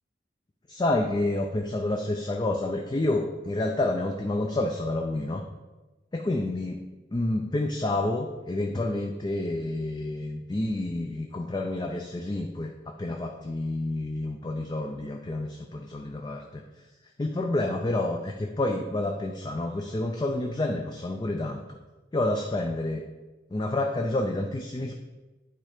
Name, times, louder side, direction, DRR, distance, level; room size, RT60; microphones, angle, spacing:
voice 1, 0.7-5.4 6.1-6.7 7.1-16.6 17.2-21.8 22.1-23.0 23.5-24.9, left 2 dB, 25° left, 3 dB, 0.4 m, -29 dB
8.9 x 3.3 x 5.0 m, 1.2 s
head